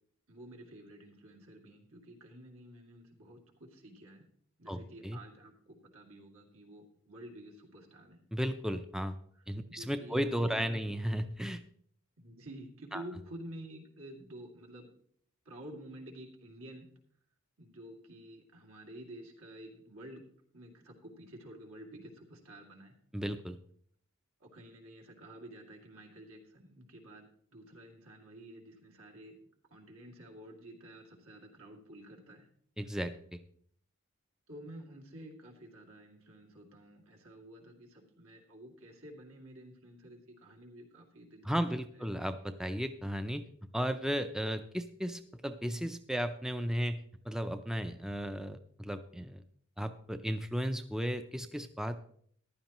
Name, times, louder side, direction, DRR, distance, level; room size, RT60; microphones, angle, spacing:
voice 1, 0.3-4.2 4.6-8.2 9.7-10.2 10.5-10.9 12.2-14.9 15.5-16.9 17.6-20.2 20.5-23.0 24.4-27.2 27.5-29.4 29.7-32.5 34.5-41.7 41.9-42.1, right 1 dB, 75° right, 0 dB, 2.5 m, -50 dB
voice 2, 4.7-5.2 8.3-9.2 9.5-11.6 12.9-13.0 23.1-23.6 32.8-33.4 41.4-43.4 43.7-47.0 47.3-49.4 49.8-52.0, equal, 5° right, 9 dB, 0.4 m, -35 dB
14.5 x 11.0 x 3.0 m, 0.63 s
head